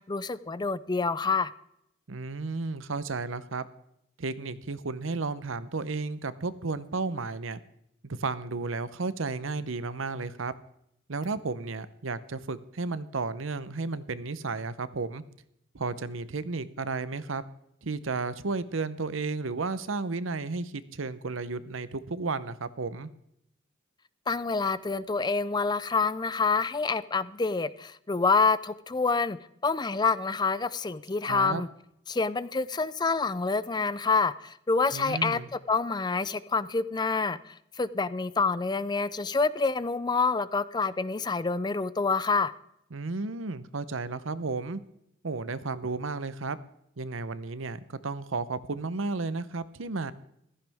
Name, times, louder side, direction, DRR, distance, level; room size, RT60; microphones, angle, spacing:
voice 1, 0.1-1.5 24.3-29.4 29.6-31.7 32.1-35.4 35.7-42.5, left 4 dB, 20° left, 16 dB, 0.5 m, -27 dB
voice 2, 2.1-3.6 4.2-7.6 8.0-10.5 11.1-15.2 15.7-17.4 17.8-23.1 31.3-31.6 34.9-35.5 42.9-44.8 45.2-46.6 47.0-50.1, right 3 dB, 75° right, 15 dB, 0.8 m, -33 dB
15.5 x 14.0 x 3.5 m, 0.78 s
head